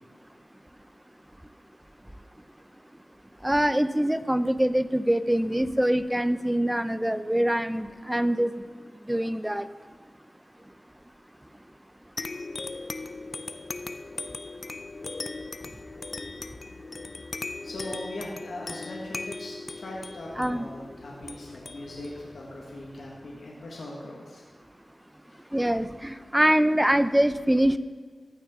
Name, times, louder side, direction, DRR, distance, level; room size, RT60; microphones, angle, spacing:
voice 1, 3.4-8.5 9.1-9.7 20.4-20.7 25.5-27.8, right 1 dB, 10° right, 13 dB, 0.5 m, -24 dB
sound 1, 12.2-23.2, left 3 dB, 55° left, 0.5 m, -39 dB
voice 2, 17.6-24.4 25.3-25.4, left 1 dB, 80° left, -3 dB, 1.6 m, -40 dB
14.5 x 6.3 x 3.7 m, 1.5 s
cardioid pair, 45°, 0 cm